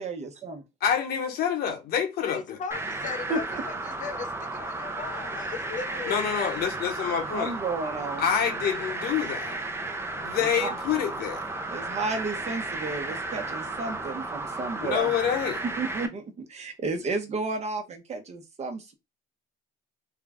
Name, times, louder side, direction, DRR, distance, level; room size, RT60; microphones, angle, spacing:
voice 1, 0.0-0.6 3.3-3.6 7.3-8.3 10.4-10.7 11.7-15.1 15.8-16.2 16.5-18.9, right 3 dB, 40° right, 1.0 m, -32 dB
voice 2, 0.8-2.6 6.1-7.5 8.2-9.5 10.1-11.5 14.8-15.6, left 8 dB, 65° left, 1.3 m, -27 dB
voice 3, 2.2-6.5, left 6 dB, 50° left, 0.8 m, -37 dB
sound 1, 2.7-16.1, right 2 dB, 15° right, 0.7 m, -34 dB
3.6 x 2.4 x 3.6 m
cardioid pair, 110°, 17 cm